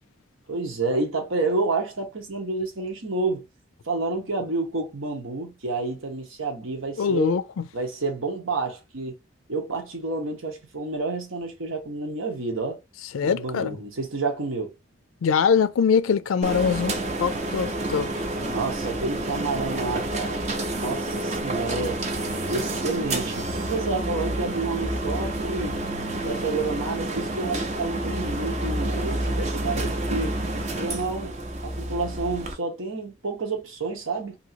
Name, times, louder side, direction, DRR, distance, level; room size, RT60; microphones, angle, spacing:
voice 1, 0.5-3.4 3.9-7.3 7.7-9.1 9.5-12.8 13.2-14.7 18.4-22.0 22.5-25.8 26.2-30.3 30.8-31.4 31.6-34.4, right 3 dB, 85° right, 1.1 m, -29 dB
voice 2, 7.0-7.6 13.1-13.8 15.2-18.1, left 6 dB, 85° left, 0.4 m, -23 dB
sound 1, 16.4-32.5, right 1 dB, 35° right, 0.5 m, -29 dB
3.0 x 2.7 x 2.7 m
head